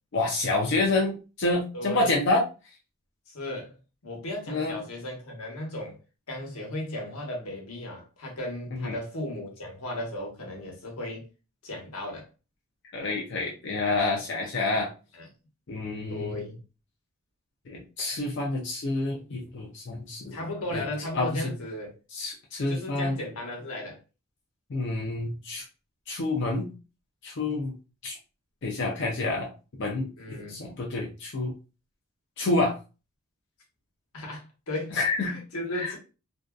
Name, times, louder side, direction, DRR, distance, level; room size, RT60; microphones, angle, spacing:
voice 1, 0.1-2.4 4.5-4.8 8.8-9.0 12.9-14.9 15.7-16.4 17.7-20.4 20.7-20.8 21.1-21.3 22.1-23.2 24.7-25.6 26.1-26.7 27.2-27.7 28.0-28.1 28.6-29.5 29.8-31.5 32.4-32.8 34.9-35.4 35.7-35.9, left 2 dB, 55° left, 0.4 m, -28 dB
voice 2, 1.7-2.1 3.3-3.8 4.0-6.0 6.3-11.3 11.6-12.2 14.6-14.7 15.1-15.3 16.1-16.6 20.3-21.9 22.7-24.0 30.2-30.7 34.1-36.0, left 1 dB, 90° left, 1.0 m, -35 dB
2.5 x 2.3 x 2.2 m
head